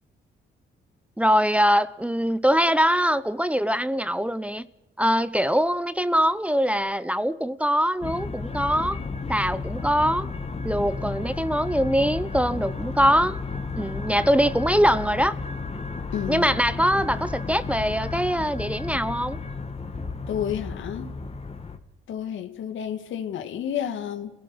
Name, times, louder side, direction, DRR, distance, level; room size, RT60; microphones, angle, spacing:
voice 1, 1.2-4.7 5.0-9.0 9.3-10.3 10.6-13.4 13.8-15.4 16.3-19.4, equal, 5° right, 0.7 m, -23 dB
sound 1, 8.0-21.8, left 4 dB, 30° left, 1.9 m, -33 dB
voice 2, 16.1-16.4 20.3-21.1 22.1-24.3, left 9 dB, 75° left, 2.1 m, -30 dB
29.0 x 17.0 x 6.2 m
cardioid pair, 90°, 20 cm